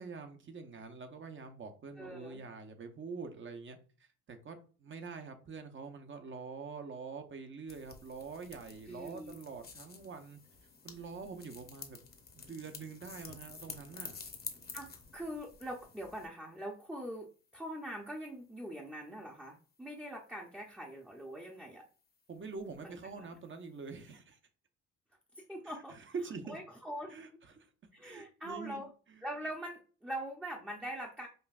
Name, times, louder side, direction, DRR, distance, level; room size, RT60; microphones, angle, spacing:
voice 1, 0.0-3.8 4.3-10.4 10.8-12.0 12.3-14.2 22.3-24.4 25.6-26.6 27.1-27.7 28.0-28.8 29.1-29.2, right 4 dB, 40° right, 0.8 m, -45 dB
voice 2, 2.0-2.4 8.9-9.4 14.7-17.3 17.5-21.9 22.8-23.3 25.4-26.0 26.5-27.1 27.9-28.9 29.2-31.3, right 1 dB, 5° right, 0.7 m, -43 dB
sound 1, 7.7-16.3, left 5 dB, 30° left, 0.8 m, -50 dB
5.4 x 2.5 x 2.4 m
cardioid pair, 90°, 30 cm